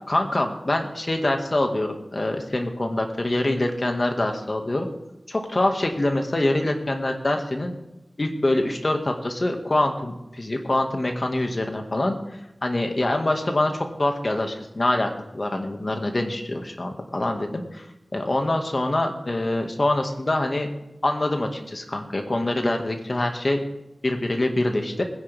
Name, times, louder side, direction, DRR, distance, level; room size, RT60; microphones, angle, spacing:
voice 1, 0.1-4.9 5.3-7.7 8.2-12.2 12.6-17.9 18.1-20.7 21.0-23.6 24.0-25.0, left 1 dB, 50° left, 4 dB, 2.0 m, -25 dB
21.0 x 10.5 x 3.6 m, 0.94 s
wide cardioid pair, 65°, 0 cm